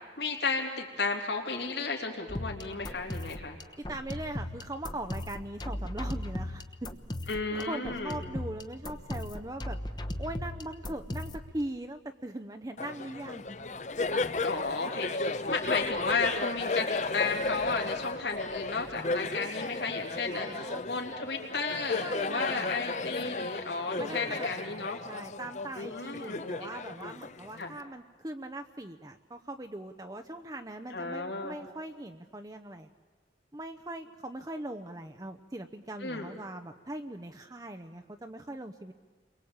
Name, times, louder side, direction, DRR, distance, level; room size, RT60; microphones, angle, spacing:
voice 1, 0.2-3.6 7.3-8.2 14.4-25.0 25.7-26.7 27.6-27.7 30.9-31.6 36.0-36.3, left 4 dB, 75° left, 1 dB, 3.5 m, -33 dB
sound 1, 2.3-11.5, left 1 dB, 25° left, 1.1 m, -38 dB
voice 2, 3.8-6.9 7.2-13.6 20.3-20.8 22.0-22.7 24.0-32.9 33.5-38.9, right 1 dB, 20° right, 6 dB, 0.8 m, -40 dB
Laughter, 12.8-27.8, left 3 dB, 40° left, 0.7 m, -34 dB
30.0 x 22.5 x 8.8 m, 1.4 s
head